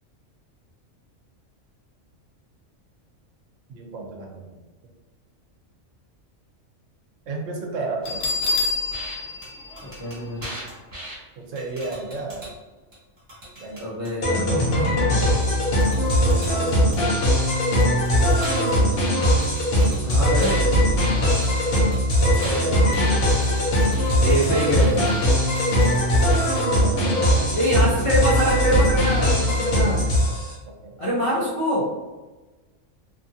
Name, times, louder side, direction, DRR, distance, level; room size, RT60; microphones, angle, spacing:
voice 1, 3.7-4.6 7.3-8.3 11.4-12.4 13.6-13.8 16.3-16.6 22.2-23.0 26.8-27.6 30.8-31.0, right 3 dB, 85° right, 1 dB, 1.0 m, -32 dB
Bell, 8.0-10.8, left 3 dB, 80° left, 0.9 m, -28 dB
sound 1, 8.4-8.5 8.9-9.1 9.4-9.5 9.8-11.2 11.6-12.5 12.9-14.1 15.4-15.5 15.8-17.4 17.8-20.6 20.9-26.6, equal, 40° right, 1.4 m, -38 dB
voice 2, 9.8-10.5 13.7-15.0 20.0-20.6 24.2-25.2 27.5-30.1 31.0-31.9, equal, 40° left, -8 dB, 0.5 m, -25 dB
sound 2, 14.2-30.5, equal, 55° left, 0.9 m, -20 dB
2.8 x 2.4 x 2.7 m, 1.2 s
omnidirectional pair, 1.3 m